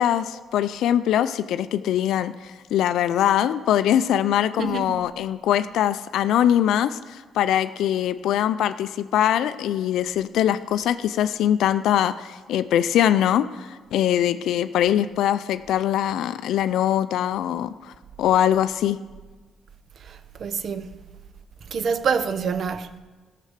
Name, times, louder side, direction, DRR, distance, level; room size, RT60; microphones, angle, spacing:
voice 1, 0.0-17.9 18.2-19.0, left 10 dB, 80° left, 0.3 m, -22 dB
voice 2, 4.6-5.0 20.0-21.0 21.7-22.9, right 6 dB, 55° right, 0.6 m, -27 dB
14.0 x 6.7 x 6.6 m
cardioid pair, 90°, 0 cm